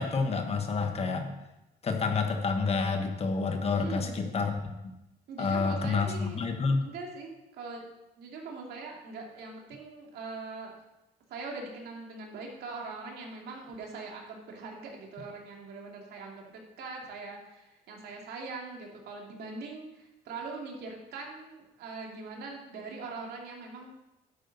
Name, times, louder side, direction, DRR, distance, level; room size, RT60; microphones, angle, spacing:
voice 1, 0.0-1.4 1.8-4.8 5.4-6.8, left 4 dB, 35° left, 5 dB, 1.4 m, -29 dB
voice 2, 3.8-4.1 5.3-6.4 6.8-7.8 8.2-10.7 11.3-23.9, right 3 dB, 70° right, 0 dB, 2.6 m, -42 dB
11.0 x 8.4 x 4.1 m, 0.93 s
cardioid pair, 110°, 17 cm